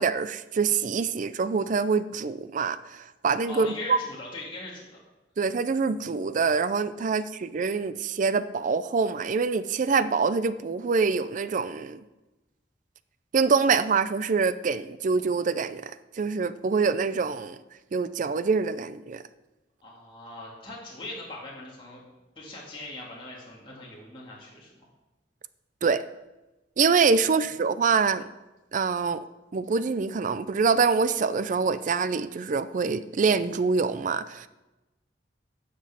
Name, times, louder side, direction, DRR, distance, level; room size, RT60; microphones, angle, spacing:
voice 1, 0.0-4.0 5.4-12.0 13.3-17.6 17.9-19.2 25.8-26.0 26.8-28.2 28.7-29.2 29.5-34.5, right 5 dB, 45° right, 14 dB, 0.4 m, -25 dB
voice 2, 3.5-5.0 19.8-22.0 22.4-24.8, left 2 dB, 30° left, -5 dB, 2.0 m, -40 dB
9.8 x 6.2 x 5.8 m, 1.1 s
head